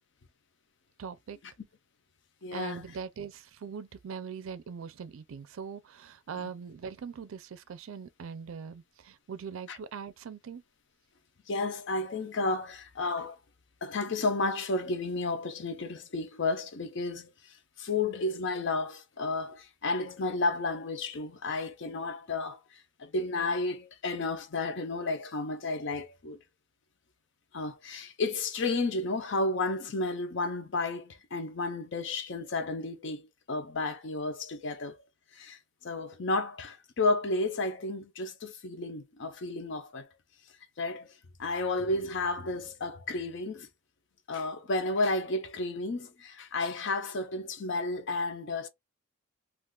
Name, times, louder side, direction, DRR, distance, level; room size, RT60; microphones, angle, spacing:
voice 1, 1.0-1.4 2.5-10.6, right 6 dB, 75° right, 0.4 m, -41 dB
voice 2, 2.4-2.8 9.7-9.8 11.5-13.4 13.8-22.6 23.0-26.4 27.5-35.0 35.3-35.6 35.8-40.1 40.8-41.1 41.4-43.7 44.3-48.7, left 3 dB, 60° left, 0.6 m, -32 dB
2.4 x 2.3 x 3.6 m
head